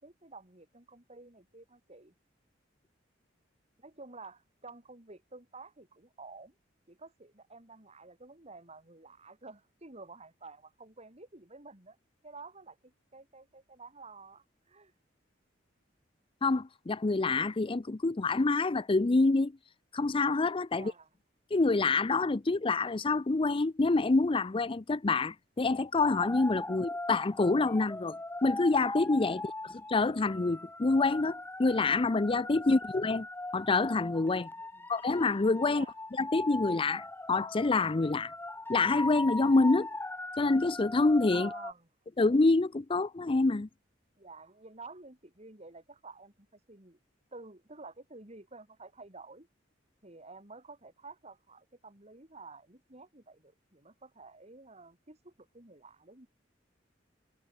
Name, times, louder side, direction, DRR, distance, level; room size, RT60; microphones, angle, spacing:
voice 1, 0.0-2.1 3.8-6.5 6.9-12.0 12.2-14.9 20.7-21.1 29.3-29.6 32.6-32.8 34.7-34.9 35.7-36.0 41.3-41.9 44.2-47.0 47.3-49.5 50.0-56.3, right 3 dB, 35° right, 3.9 m, -51 dB
voice 2, 16.4-19.5 19.9-20.9 21.5-28.2 28.4-33.3 33.5-34.5 34.9-35.9 36.2-38.3 38.7-39.9 40.4-41.5 42.2-43.7, left 3 dB, 30° left, 0.5 m, -27 dB
sound 1, 26.0-41.7, left 2 dB, 10° left, 1.5 m, -40 dB
head